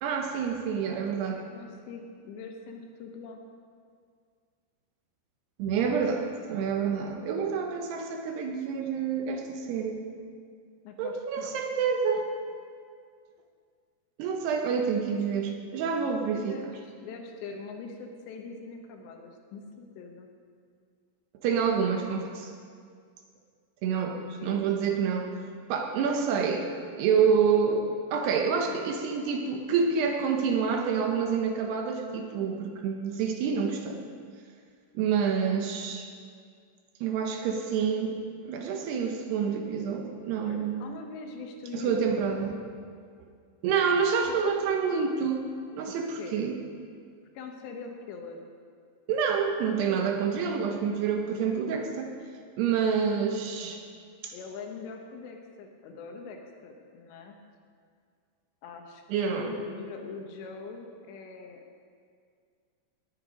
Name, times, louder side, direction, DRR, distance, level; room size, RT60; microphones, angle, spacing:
voice 1, 0.0-1.4 5.6-10.0 11.0-12.3 14.2-16.6 21.4-22.5 23.8-25.3 25.7-26.7 27.0-34.0 34.9-36.1 37.0-38.2 38.5-40.9 41.7-42.6 43.6-45.4 45.7-46.6 49.1-52.1 52.6-53.8 54.2-54.3 59.1-59.6, right 6 dB, 75° right, 3 dB, 2.8 m, -28 dB
voice 2, 1.3-3.4 10.8-11.6 16.4-20.3 24.1-24.6 26.1-26.3 28.7-28.8 40.4-42.0 45.9-46.5 47.3-48.4 54.3-57.4 58.6-61.6, left 4 dB, 75° left, 3 dB, 3.3 m, -42 dB
18.5 x 9.5 x 5.1 m, 2.1 s
omnidirectional pair, 5.2 m